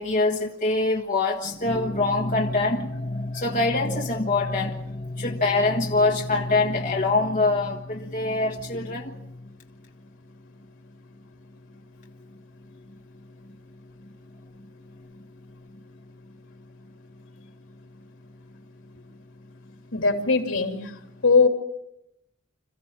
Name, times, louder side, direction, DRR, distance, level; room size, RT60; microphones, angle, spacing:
voice 1, 0.0-9.4 14.6-14.7, left 2 dB, 35° left, 1.4 m, -24 dB
voice 2, 19.9-20.9 21.2-21.5, left 4 dB, 75° left, 3.1 m, -20 dB
27.0 x 15.0 x 7.5 m
head